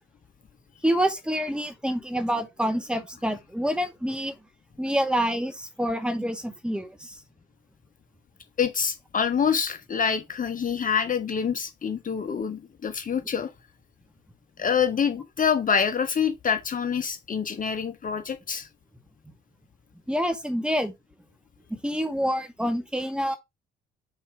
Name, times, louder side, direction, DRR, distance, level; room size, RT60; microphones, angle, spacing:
voice 1, 0.8-4.3 4.8-7.2 20.1-20.9 21.8-23.4, equal, 5° right, 2.0 m, -27 dB
voice 2, 8.6-13.5 14.6-18.7, left 7 dB, 40° left, 1.3 m, -26 dB
5.6 x 4.4 x 4.9 m
supercardioid pair, 65°, 20 cm